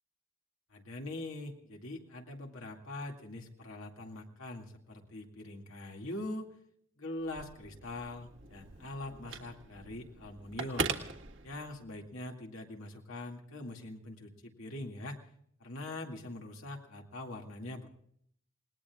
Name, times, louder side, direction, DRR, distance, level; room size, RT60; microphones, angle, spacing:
voice 1, 0.7-6.5 7.0-10.9 11.4-15.2 15.6-17.9, left 2 dB, 85° left, 1 dB, 2.3 m, -43 dB
Telephone, 7.2-12.0, right 4 dB, 60° right, 1.6 m, -41 dB
28.5 x 19.5 x 2.4 m, 0.65 s
head